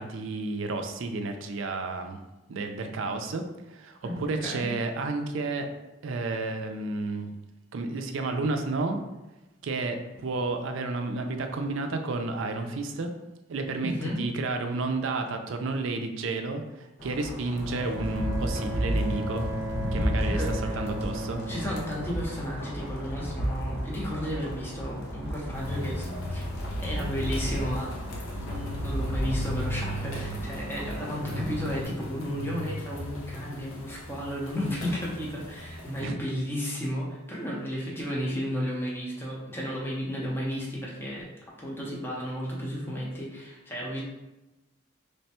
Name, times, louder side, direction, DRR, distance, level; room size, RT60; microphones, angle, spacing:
voice 1, 0.0-2.2 2.5-3.4 3.7-5.7 6.0-7.3 7.7-9.0 9.6-13.1 13.5-19.5 19.9-21.4 31.3-31.5 36.0-36.2, right 3 dB, 65° right, 5 dB, 0.4 m, -31 dB
voice 2, 4.0-4.7 13.8-14.2 20.3-20.8 21.5-26.5 26.8-27.9 28.4-41.3 41.6-44.0, equal, 10° left, -5 dB, 0.7 m, -33 dB
sound 1, 17.0-31.8, equal, 50° left, 0.6 m, -33 dB
Bowed string instrument, 17.7-22.7, equal, 20° right, 0.9 m, -35 dB
sound 2, 25.5-36.0, left 1 dB, 80° left, 0.8 m, -38 dB
3.3 x 2.2 x 4.2 m, 1.0 s
head